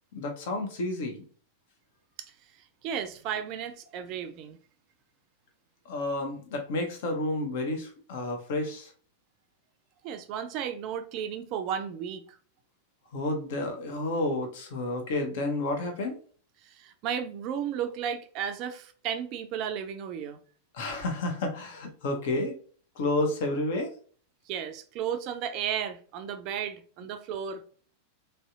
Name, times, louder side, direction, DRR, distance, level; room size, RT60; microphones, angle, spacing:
voice 1, 0.1-1.2 5.9-8.9 13.1-16.2 20.7-22.5 23.0-23.9, left 2 dB, 55° left, 0.8 m, -30 dB
voice 2, 2.8-4.6 10.0-12.2 16.8-20.4 24.5-27.6, right 8 dB, 40° right, 0.4 m, -34 dB
3.2 x 2.7 x 2.4 m
figure-of-eight pair, 90°, 0 cm